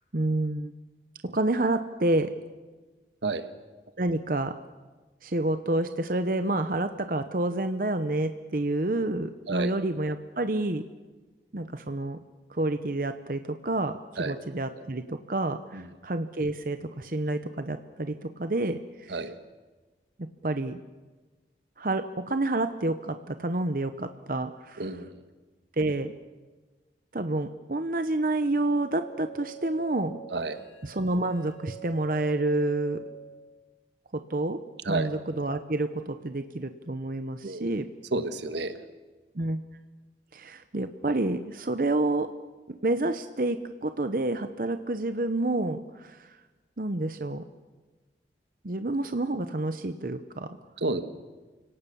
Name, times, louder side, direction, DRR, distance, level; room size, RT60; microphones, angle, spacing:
voice 1, 0.1-0.7 1.3-2.3 4.0-4.6 5.2-10.8 11.5-12.2 12.5-19.2 20.4-20.8 21.8-24.9 25.8-26.1 27.1-30.2 30.8-33.0 34.1-34.6 34.9-37.9 39.3-39.6 40.3-42.3 42.8-46.3 46.8-47.4 48.6-50.6, right 2 dB, 50° right, 9 dB, 0.9 m, -29 dB
voice 2, 24.8-25.2 30.3-30.6 34.8-35.1 37.4-37.7 38.1-38.8 50.8-51.0, right 3 dB, 85° right, 9 dB, 1.6 m, -30 dB
sound 1, 28.5-33.5, right 8 dB, 20° right, 3.3 m, -46 dB
29.0 x 18.0 x 7.0 m, 1.3 s
head